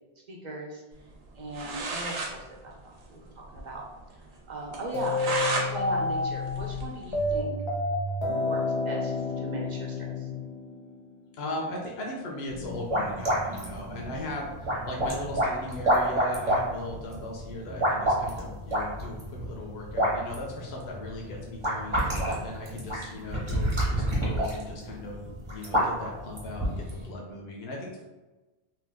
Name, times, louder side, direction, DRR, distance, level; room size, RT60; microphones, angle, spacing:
voice 1, 0.3-0.8 1.4-2.7 3.1-3.8 4.5-7.6 8.2-10.3, right 1 dB, 55° right, -1 dB, 0.6 m, -38 dB
sound 1, 1.3-1.4 1.5-2.3 2.7-2.8 3.0-3.1 3.5-3.6 4.0-4.1 4.7-5.7 6.1-7.4, right 3 dB, 75° right, 0.9 m, -32 dB
sound 2, 4.9-11.1, left 2 dB, 40° left, 0.4 m, -29 dB
voice 2, 11.4-28.0, left 1 dB, 90° left, -1 dB, 0.9 m, -38 dB
sound 3, 12.5-27.1, right 1 dB, 30° right, 0.9 m, -29 dB
2.8 x 2.2 x 3.3 m, 1.1 s
omnidirectional pair, 1.0 m